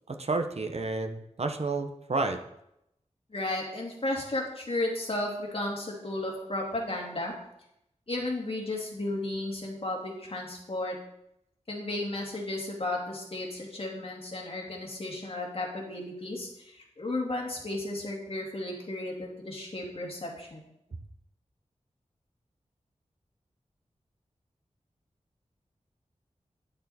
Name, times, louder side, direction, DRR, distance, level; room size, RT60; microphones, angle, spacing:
voice 1, 0.1-2.4, right 3 dB, 55° right, 6 dB, 0.9 m, -30 dB
voice 2, 3.3-7.3 8.1-11.0 11.7-20.6, left 2 dB, 50° left, -1 dB, 2.4 m, -34 dB
10.5 x 6.6 x 4.2 m, 0.81 s
wide cardioid pair, 65°, 13 cm